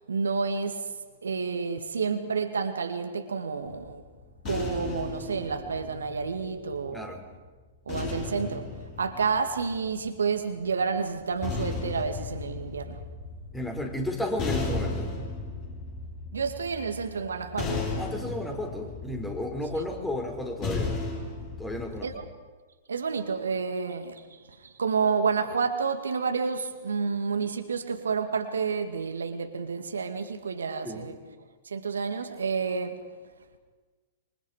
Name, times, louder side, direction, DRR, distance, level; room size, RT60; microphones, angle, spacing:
voice 1, 0.1-0.9 1.2-4.0 4.5-7.0 7.9-8.7 9.0-13.0 16.3-17.8 22.0-22.2 22.9-31.2 31.6-33.0, right 5 dB, 80° right, 2.2 m, -30 dB
sound 1, 3.7-7.0 7.9-10.2 11.1-22.2, left 3 dB, 35° left, 8.0 m, -35 dB
voice 2, 6.9-7.2 13.5-15.1 18.0-21.0 21.6-22.1 30.8-31.1, left 1 dB, 5° left, 4.5 m, -33 dB
27.0 x 24.0 x 5.1 m
figure-of-eight pair, 110°, 0 cm